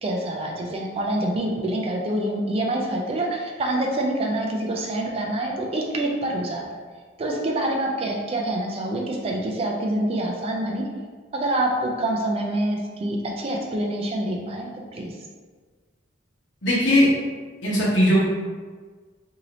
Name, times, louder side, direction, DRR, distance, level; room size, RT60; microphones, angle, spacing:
voice 1, 0.0-6.6 7.2-10.9 11.3-15.1, right 1 dB, 30° right, 0 dB, 0.3 m, -26 dB
voice 2, 16.6-17.1 17.6-18.2, equal, 75° left, -7 dB, 1.1 m, -18 dB
2.8 x 2.7 x 3.0 m, 1.5 s
head